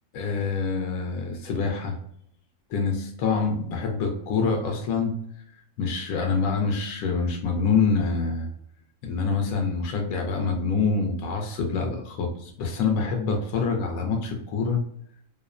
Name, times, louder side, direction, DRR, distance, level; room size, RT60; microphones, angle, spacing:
voice 1, 0.1-2.0 2.7-5.1 5.8-8.5 9.0-14.8, left 4 dB, 75° left, 2 dB, 0.9 m, -26 dB
2.7 x 2.0 x 2.3 m, 0.70 s
omnidirectional pair, 1.6 m